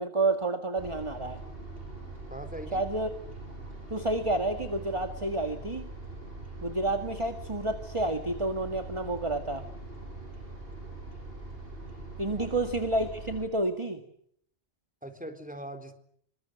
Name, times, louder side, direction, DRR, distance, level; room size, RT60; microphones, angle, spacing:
voice 1, 0.0-1.4 2.7-3.1 3.9-5.9 6.6-9.7 12.2-14.0, right 2 dB, 25° right, 7 dB, 2.0 m, -30 dB
sound 1, 0.8-13.5, right 2 dB, 55° right, 7.7 m, -42 dB
voice 2, 2.3-2.8 12.2-12.5 15.0-15.9, right 1 dB, 5° right, 7 dB, 4.0 m, -41 dB
27.5 x 25.0 x 8.0 m, 0.68 s
omnidirectional pair, 1.2 m